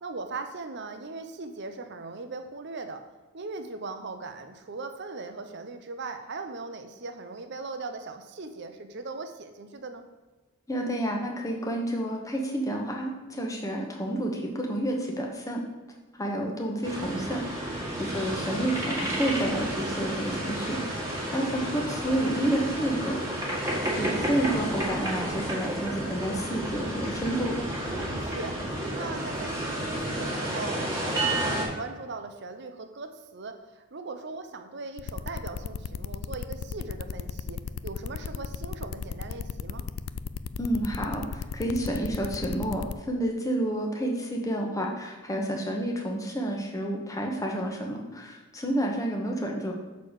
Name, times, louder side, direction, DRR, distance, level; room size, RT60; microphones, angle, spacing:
voice 1, 0.0-3.0 3.3-10.0 23.5-23.9 28.1-28.6 28.9-39.8, right 3 dB, 50° right, 7 dB, 0.7 m, -39 dB
voice 2, 10.7-15.6 16.1-23.2 24.0-27.7 40.6-49.7, right 1 dB, 15° left, 1 dB, 1.0 m, -30 dB
sound 1, 16.8-31.6, right 1 dB, 15° right, 1.6 m, -31 dB
sound 2, 35.0-42.9, left 6 dB, 70° left, 0.3 m, -35 dB
6.5 x 4.1 x 6.4 m, 1.3 s
head